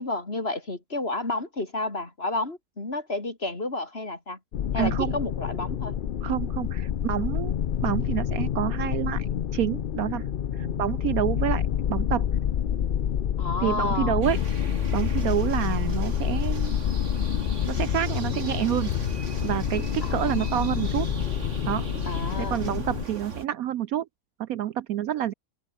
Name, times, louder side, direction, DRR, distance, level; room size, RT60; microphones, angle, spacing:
voice 1, 0.0-4.4 4.7-5.9 10.6-10.8 13.4-14.2 20.0-20.5 22.1-22.6, left 2 dB, 35° left, 3.9 m, -31 dB
sound 1, 4.5-23.1, left 9 dB, 75° left, 0.4 m, -28 dB
voice 2, 4.8-5.2 6.2-7.5 7.8-9.3 9.5-10.2 10.5-11.6 11.9-12.3 13.6-14.4 14.9-16.8 17.7-18.9 19.4-21.1 21.7-21.8 22.4-24.1 24.4-25.3, right 11 dB, 70° right, 1.0 m, -28 dB
sound 2, 14.2-23.5, right 3 dB, 45° right, 3.0 m, -39 dB
open air
omnidirectional pair, 1.7 m